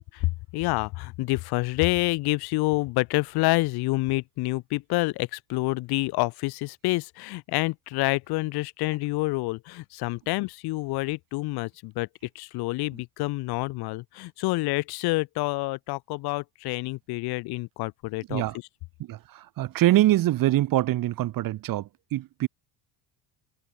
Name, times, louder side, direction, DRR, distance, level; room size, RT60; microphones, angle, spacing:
voice 1, 0.1-12.1 12.3-18.4, left 22 dB, 65° left, 0.8 m, -28 dB
voice 2, 19.0-22.5, right 15 dB, 55° right, 1.5 m, -24 dB
cardioid pair, 130°, 41 cm